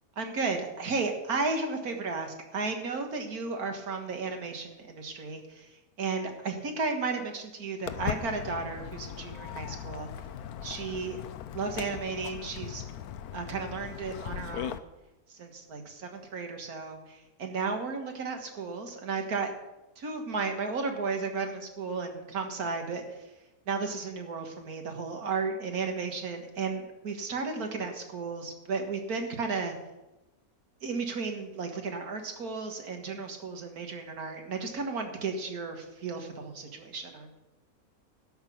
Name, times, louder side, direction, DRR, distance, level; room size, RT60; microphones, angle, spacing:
voice 1, 0.2-10.1 10.6-11.2 11.5-12.8 13.3-14.8 15.3-19.5 20.0-23.2 23.7-29.7 30.8-37.4, right 4 dB, 80° right, 4 dB, 2.0 m, -34 dB
Walk footsteps, 7.9-14.8, left 9 dB, 90° left, 1.2 m, -39 dB
12.5 x 5.9 x 8.5 m, 1.0 s
omnidirectional pair, 1.5 m